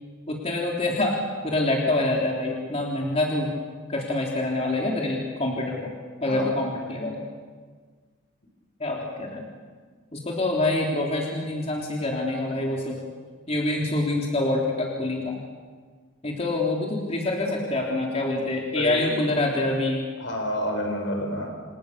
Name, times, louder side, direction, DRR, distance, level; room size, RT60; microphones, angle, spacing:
voice 1, 0.3-1.2 1.4-3.5 3.9-5.9 6.2-7.2 8.8-9.5 10.1-13.0 13.5-15.4 16.2-20.0, left 2 dB, 30° left, -2 dB, 3.6 m, -26 dB
voice 2, 6.3-6.6 12.5-12.6 18.7-19.2 20.2-21.6, equal, 65° left, 3 dB, 6.0 m, -29 dB
28.5 x 28.0 x 6.9 m, 1.5 s
head